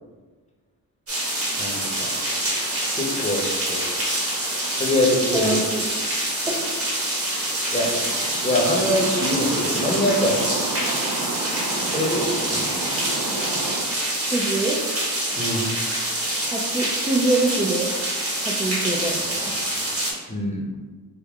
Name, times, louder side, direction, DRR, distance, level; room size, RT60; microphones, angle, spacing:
sound 1, 1.1-20.1, right 1 dB, 35° right, 1.1 m, -26 dB
voice 1, 1.6-2.1 2.9-3.8 4.7-5.6 7.7-7.9 8.4-10.5 11.9-12.7 15.4-15.7 20.3-20.6, left 1 dB, 20° left, -2 dB, 0.8 m, -24 dB
voice 2, 5.3-5.8 6.5-6.7 14.3-14.8 16.5-17.9 18.6-19.5, right 2 dB, 15° right, -3 dB, 0.4 m, -24 dB
sound 2, 7.6-13.8, right 3 dB, 75° right, 0.5 m, -31 dB
3.5 x 2.1 x 3.5 m, 1.4 s
cardioid pair, 85°, 38 cm